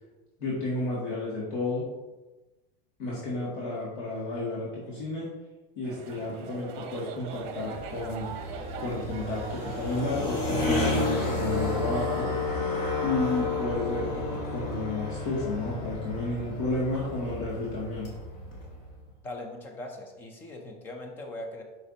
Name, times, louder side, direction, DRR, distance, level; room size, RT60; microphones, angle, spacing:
voice 1, 0.4-1.9 3.0-5.3 5.8-8.3 8.8-12.3 13.0-18.1, left 2 dB, 55° left, -6 dB, 1.9 m, -32 dB
sound 1, 5.8-12.4, right 7 dB, 50° right, 0.9 m, -42 dB
sound 2, 7.4-19.0, left 3 dB, 30° left, 1.5 m, -31 dB
voice 2, 19.2-21.6, left 1 dB, 5° left, 3 dB, 0.3 m, -40 dB
8.1 x 5.8 x 2.7 m, 1.1 s
supercardioid pair, 175°, 29 cm